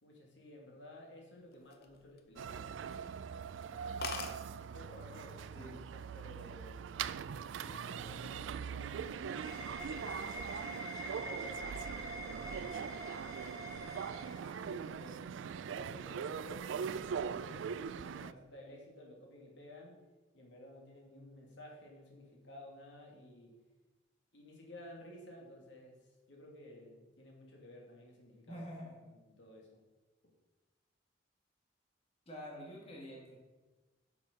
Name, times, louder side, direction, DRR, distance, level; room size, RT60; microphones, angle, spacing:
voice 1, 0.0-2.8 3.6-6.8 7.6-15.2 15.6-20.0 20.3-23.6 24.3-28.6 29.1-29.8, left 1 dB, 75° left, -1 dB, 2.1 m, -54 dB
sound 1, 1.5-2.5 2.9-3.1 3.5-3.6 3.8-3.9 4.0-4.4 5.3-5.6 6.0-6.4, left 5 dB, 55° left, 0.8 m, -43 dB
sound 2, 2.4-18.3, right 7 dB, 90° right, 0.3 m, -42 dB
sound 3, 8.8-15.0, right 1 dB, 20° right, 1.3 m, -46 dB
voice 2, 28.5-29.0 32.3-33.4, equal, 35° left, -2 dB, 1.8 m, -47 dB
7.3 x 6.1 x 5.9 m, 1.2 s
head